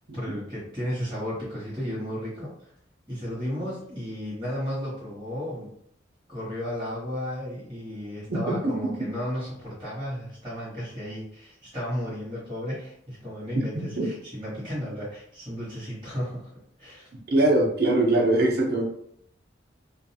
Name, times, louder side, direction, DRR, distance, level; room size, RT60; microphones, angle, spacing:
voice 1, 0.1-2.7 3.1-5.7 6.3-16.5 16.8-17.1, equal, 15° right, -10 dB, 1.2 m, -34 dB
voice 2, 17.3-18.8, right 2 dB, 55° right, 0 dB, 0.6 m, -21 dB
2.4 x 2.3 x 2.7 m, 0.68 s
head